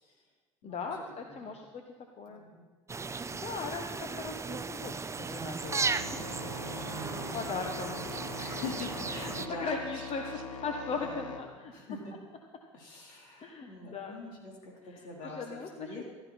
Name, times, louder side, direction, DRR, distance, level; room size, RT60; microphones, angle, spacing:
voice 1, 0.6-1.8 2.2-2.4 3.3-6.8 7.3-8.1 9.5-11.7 13.4-14.1 14.8-16.0, left 4 dB, 40° left, 4 dB, 1.4 m, -39 dB
voice 2, 2.3-2.7 8.4-9.8 11.0-11.4 11.7-12.1 12.7-14.7 15.0-16.0, left 3 dB, 65° left, -2 dB, 4.2 m, -43 dB
sound 1, 2.9-9.5, right 4 dB, 20° right, 0.6 m, -36 dB
sound 2, 5.0-10.6, right 9 dB, 60° right, 0.9 m, -52 dB
sound 3, 5.6-11.4, left 4 dB, 85° left, 1.3 m, -42 dB
15.5 x 13.0 x 4.4 m, 1.5 s
hypercardioid pair, 65°, 16 cm